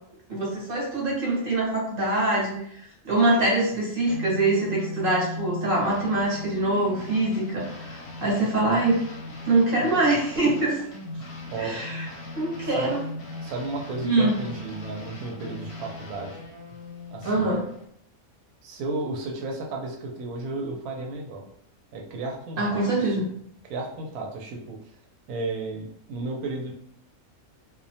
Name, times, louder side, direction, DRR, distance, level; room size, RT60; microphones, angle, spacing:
voice 1, 0.3-9.0 9.5-10.8 11.6-12.1 12.3-13.0 14.0-14.4 17.2-17.6 22.6-23.3, right 2 dB, 50° right, -3 dB, 0.8 m, -24 dB
sound 1, 4.1-17.8, left 2 dB, 65° left, 0.7 m, -38 dB
voice 2, 12.6-12.9 13.4-16.5 17.1-17.5 18.6-21.4 21.9-23.2 23.6-24.8 25.3-26.7, right 3 dB, 85° right, 1 dB, 1.0 m, -33 dB
2.4 x 2.1 x 2.7 m, 0.69 s
omnidirectional pair, 1.5 m